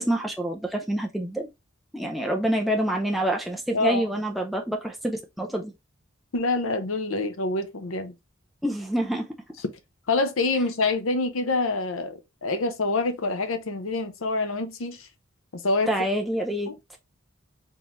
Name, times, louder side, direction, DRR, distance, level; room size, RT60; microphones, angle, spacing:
voice 1, 0.0-1.5 1.9-5.7 8.6-9.2 15.9-16.7, right 1 dB, ahead, 0.4 m, -27 dB
voice 2, 3.7-4.0 6.3-8.1 10.1-15.1 15.6-15.9 16.7-16.8, left 3 dB, 85° left, 0.7 m, -26 dB
3.9 x 3.6 x 2.9 m
head